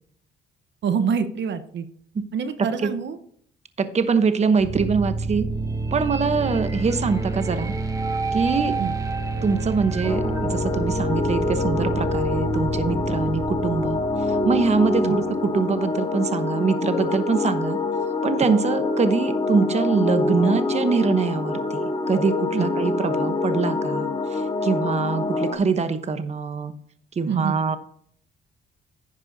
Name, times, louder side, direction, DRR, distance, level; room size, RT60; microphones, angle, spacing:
voice 1, 0.8-1.8 2.3-3.2 8.8-8.9 15.0-15.2 22.5-22.7 27.3-27.6, right 6 dB, 65° right, 10 dB, 1.0 m, -26 dB
voice 2, 3.8-5.5 5.9-7.7 8.3-8.8 9.4-14.0 14.3-17.8 18.2-26.7 27.2-27.8, right 5 dB, 35° right, 10 dB, 1.0 m, -23 dB
sound 1, 4.6-15.5, right 3 dB, 15° right, 1.5 m, -28 dB
sound 2, 10.0-25.5, left 3 dB, 25° left, 2.0 m, -25 dB
10.0 x 9.6 x 2.7 m, 0.63 s
cardioid pair, 90°, 20 cm